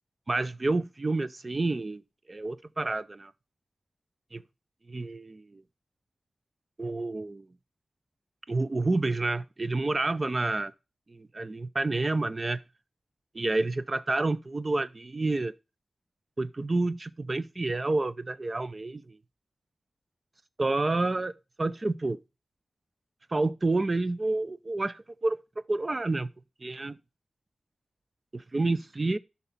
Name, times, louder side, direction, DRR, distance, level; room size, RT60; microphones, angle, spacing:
voice 1, 0.3-2.0 2.3-3.3 4.3-4.4 4.9-5.6 6.8-7.5 8.5-10.7 11.1-12.6 13.3-15.5 16.4-19.2 20.6-21.3 21.6-22.2 23.3-25.4 25.7-26.3 26.6-27.0 28.3-29.2, right 2 dB, 35° right, 0.5 m, -29 dB
11.5 x 4.1 x 5.5 m
wide cardioid pair, 105°, 0 cm